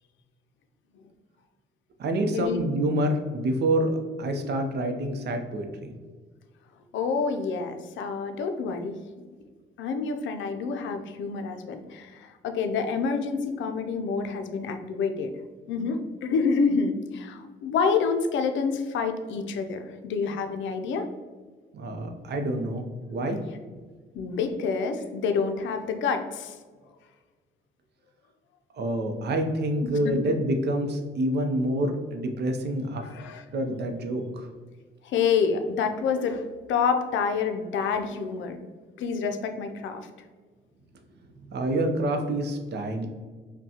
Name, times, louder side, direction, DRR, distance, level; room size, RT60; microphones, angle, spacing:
voice 1, 2.0-5.9 21.7-23.4 28.7-33.0 33.5-34.5 41.5-43.1, right 1 dB, 55° right, 5 dB, 0.6 m, -27 dB
voice 2, 6.9-9.0 9.8-15.3 15.7-21.1 24.1-26.6 30.0-30.3 33.0-33.4 35.0-38.7 39.0-40.1, left 5 dB, 75° left, 6 dB, 0.5 m, -28 dB
5.4 x 2.2 x 2.8 m, 1.5 s
cardioid pair, 90°, 20 cm